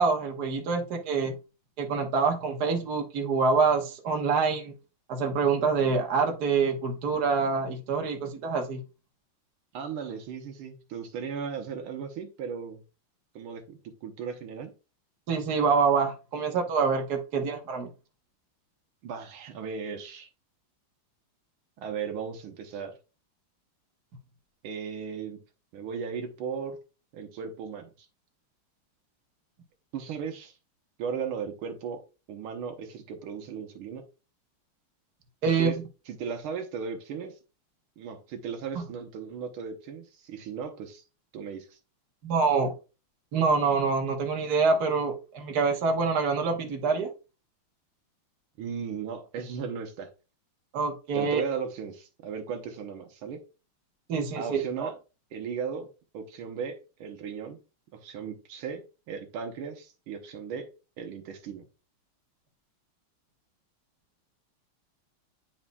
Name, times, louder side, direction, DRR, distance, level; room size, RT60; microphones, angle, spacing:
voice 1, 0.0-1.3 1.8-4.7 5.1-8.8 15.3-17.9 35.4-35.7 42.2-42.7 43.3-47.1 50.7-51.4 54.1-54.9, right 5 dB, 55° right, 3 dB, 1.6 m, -26 dB
voice 2, 9.7-12.8 13.4-14.7 19.0-20.3 21.8-23.0 24.6-25.4 25.7-26.8 27.1-28.1 29.9-30.6 31.0-32.0 32.3-34.0 35.6-35.8 36.1-37.4 38.0-41.0 41.3-41.8 48.6-50.1 51.1-53.4 54.4-55.0 55.3-55.9 56.1-57.6 57.9-60.7 61.0-61.6, right 6 dB, 80° right, 6 dB, 1.7 m, -36 dB
10.0 x 4.3 x 2.3 m, 0.31 s
omnidirectional pair, 2.3 m